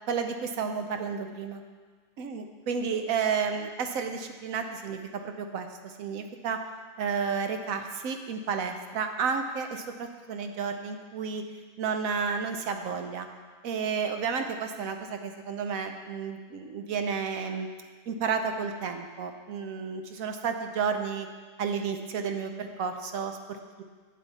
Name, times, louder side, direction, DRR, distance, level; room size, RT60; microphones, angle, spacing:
voice 1, 0.1-1.6 2.2-6.6 7.0-11.4 11.8-13.3 13.6-17.7 18.1-21.3 21.6-23.8, right 6 dB, 75° right, 6 dB, 1.1 m, -32 dB
8.5 x 7.4 x 4.1 m, 1.5 s
omnidirectional pair, 1.5 m